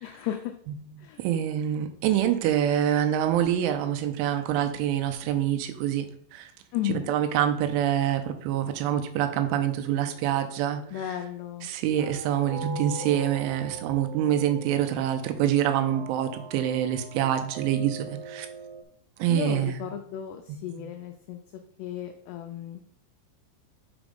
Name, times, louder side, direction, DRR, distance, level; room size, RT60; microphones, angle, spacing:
voice 1, 0.0-0.5 1.0-1.3 6.7-7.1 10.9-11.7 19.3-21.4 21.8-22.9, left 11 dB, 90° left, 6 dB, 2.3 m, -34 dB
voice 2, 1.2-6.5 6.9-11.2 11.6-18.5 19.2-19.8 20.5-20.9, right 10 dB, 90° right, 7 dB, 3.1 m, -26 dB
sound 1, 9.4-18.8, right 4 dB, 75° right, 2.6 m, -42 dB
6.0 x 5.2 x 5.1 m, 0.64 s
omnidirectional pair, 5.4 m